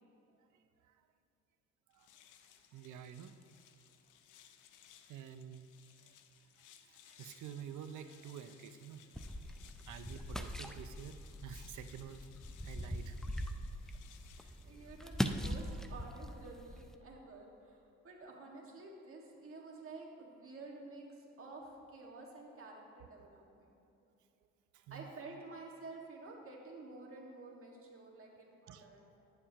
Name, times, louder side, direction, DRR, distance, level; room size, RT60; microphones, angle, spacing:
voice 1, 0.3-1.1 1.9-2.1 2.4-3.4 5.1-6.2 6.6-9.4 9.8-12.3 12.6-13.2 24.7-25.1 28.7-28.9, right 8 dB, 75° right, 10 dB, 0.6 m, -50 dB
sound 1, 1.9-15.6, left 9 dB, 85° left, 0.6 m, -62 dB
sound 2, 9.1-17.0, equal, ahead, 0.4 m, -41 dB
voice 2, 14.4-17.8 18.0-23.7 24.9-29.2, right 3 dB, 45° right, -1 dB, 1.8 m, -51 dB
11.0 x 9.3 x 2.9 m, 2.7 s
cardioid pair, 90°, 30 cm